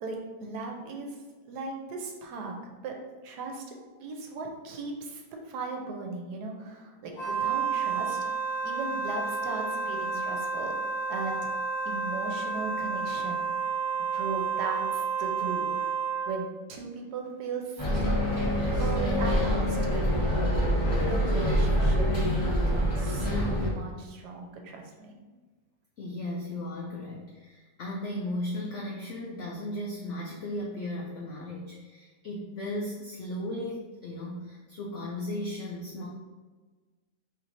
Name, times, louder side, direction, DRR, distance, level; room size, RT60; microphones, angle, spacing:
voice 1, 0.0-2.9 3.2-8.3 8.6-10.7 11.1-11.5 11.8-13.4 14.1-15.7 16.2-18.2 18.6-20.1 21.1-22.1 22.5-25.1, right 4 dB, 80° right, 2 dB, 1.2 m, -37 dB
Wind instrument woodwind instrument, 7.1-16.4, right 5 dB, 50° left, 1.0 m, -30 dB
Bus, 17.8-23.7, equal, 15° left, 1.0 m, -25 dB
voice 2, 26.0-36.1, left 1 dB, 75° left, -2 dB, 0.6 m, -36 dB
4.3 x 3.1 x 2.6 m, 1.3 s
omnidirectional pair, 1.8 m